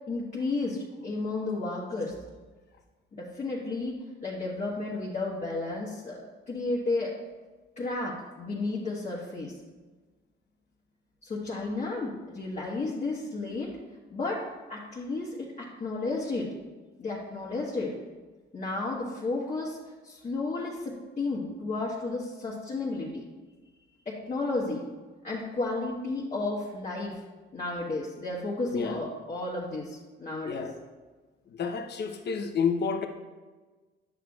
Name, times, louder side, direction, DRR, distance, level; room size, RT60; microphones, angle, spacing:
voice 1, 0.1-2.2 3.1-3.9 4.2-7.1 7.8-9.5 11.2-13.7 14.1-14.4 14.7-16.5 17.0-17.9 18.5-23.2 24.0-24.8 25.2-27.2 27.5-30.7, left 3 dB, 35° left, -5 dB, 1.4 m, -32 dB
voice 2, 31.5-33.1, left 6 dB, 55° left, 5 dB, 0.8 m, -29 dB
9.2 x 5.9 x 2.4 m, 1.3 s
cardioid pair, 90°, 20 cm